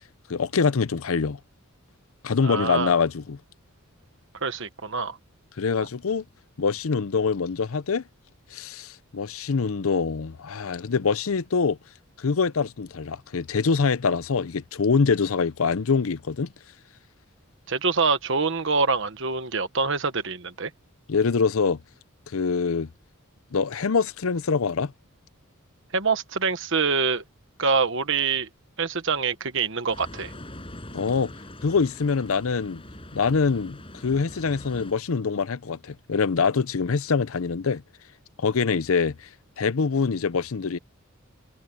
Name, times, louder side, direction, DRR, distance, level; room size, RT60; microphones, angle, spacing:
voice 1, 0.3-1.4 2.2-3.4 5.6-6.2 6.6-8.0 8.5-11.8 12.2-16.5 21.1-21.8 22.3-22.9 23.5-24.9 30.9-31.3 31.6-32.8 33.1-37.8 38.4-39.3 39.6-40.8, left 5 dB, 75° left, 0.6 m, -24 dB
voice 2, 2.4-2.9 4.4-5.2 17.7-20.7 25.9-27.2 27.6-28.5 28.8-30.3, right 4 dB, 60° right, 1.3 m, -25 dB
sound 1, 29.9-34.9, left 1 dB, 25° left, 7.3 m, -43 dB
head